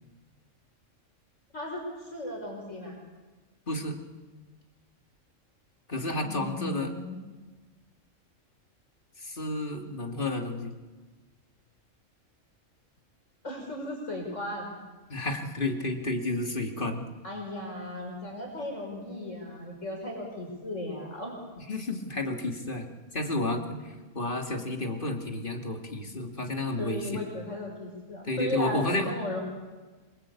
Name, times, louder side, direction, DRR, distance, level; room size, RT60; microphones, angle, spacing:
voice 1, 1.5-3.0 6.2-7.2 13.4-14.8 17.2-21.3 26.8-29.4, left 1 dB, 70° left, 0 dB, 6.1 m, -36 dB
voice 2, 3.7-4.0 5.9-6.9 9.2-10.7 15.1-17.0 21.7-22.9 23.1-27.2 28.2-29.1, left 2 dB, 40° left, 3 dB, 2.8 m, -31 dB
27.0 x 23.0 x 8.6 m, 1.3 s
omnidirectional pair, 1.3 m